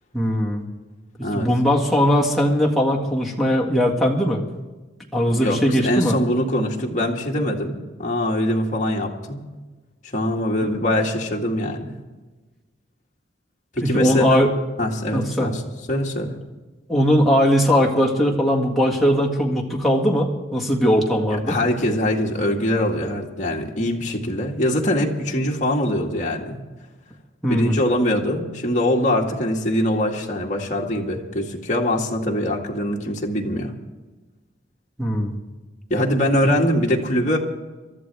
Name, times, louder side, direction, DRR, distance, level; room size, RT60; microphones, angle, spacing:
voice 1, 0.1-0.6 1.3-4.4 5.1-6.2 13.8-14.5 15.1-15.5 16.9-21.6 27.4-27.8 35.0-35.4 36.4-36.6, equal, ahead, 1 dB, 1.8 m, -19 dB
voice 2, 5.3-9.4 10.1-12.0 13.7-14.5 14.8-15.6 15.9-16.4 21.5-26.6 27.5-33.7 35.9-37.4, left 1 dB, 35° left, -1 dB, 1.9 m, -23 dB
23.5 x 13.5 x 3.5 m, 1.2 s
head